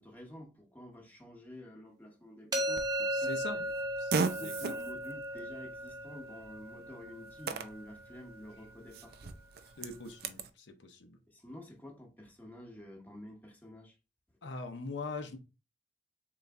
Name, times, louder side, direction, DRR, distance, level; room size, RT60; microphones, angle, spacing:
voice 1, 0.0-3.6 4.1-9.3 11.3-14.0, left 1 dB, 10° left, 0.9 m, -50 dB
sound 1, 2.5-8.3, equal, 20° right, 1.0 m, -37 dB
Fart, 2.7-10.5, right 4 dB, 55° right, 0.5 m, -40 dB
voice 2, 3.1-3.7 4.0-4.1 4.4-4.7 9.8-11.2 14.4-15.4, left 3 dB, 80° left, 0.7 m, -42 dB
3.9 x 3.1 x 3.4 m
head